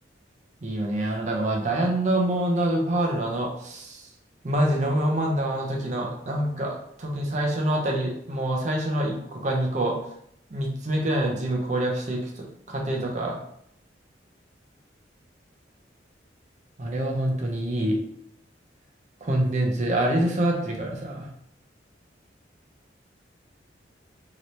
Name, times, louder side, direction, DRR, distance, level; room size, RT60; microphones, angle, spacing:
voice 1, 0.6-4.0 4.4-6.7 7.0-10.0 10.5-13.4 16.8-18.0 19.2-21.3, right 1 dB, 40° right, -1 dB, 0.6 m, -26 dB
2.9 x 2.7 x 3.0 m, 0.71 s
head